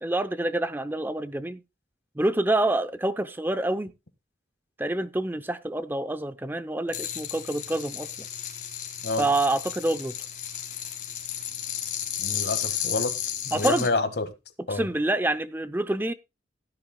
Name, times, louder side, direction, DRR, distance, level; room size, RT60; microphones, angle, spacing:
voice 1, 0.0-1.6 2.2-3.9 4.8-8.1 9.2-10.1 13.5-13.9 14.7-16.1, right 1 dB, 10° right, 0.5 m, -27 dB
sound 1, 6.9-13.9, left 9 dB, 45° left, 3.6 m, -33 dB
voice 2, 12.2-13.1 13.4-14.3 14.7-14.8, left 3 dB, 65° left, 1.6 m, -28 dB
16.5 x 10.5 x 2.2 m
head